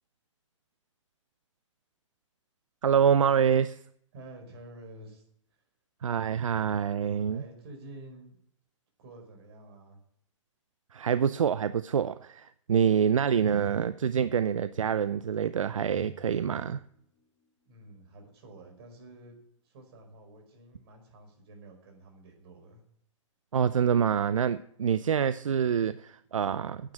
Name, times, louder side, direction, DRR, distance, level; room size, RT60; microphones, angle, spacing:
voice 1, 2.8-3.8 6.0-7.4 10.9-16.8 23.5-26.9, right 7 dB, 80° right, 15 dB, 0.5 m, -26 dB
voice 2, 4.1-5.6 6.3-6.4 7.3-8.4 9.0-10.0 17.7-19.4 19.6-22.8, right 1 dB, 50° right, 4 dB, 5.3 m, -49 dB
sound 1, 15.9-17.7, left 2 dB, 40° left, 2.7 m, -55 dB
9.8 x 9.0 x 8.6 m, 0.69 s
hypercardioid pair, 125°, 16 cm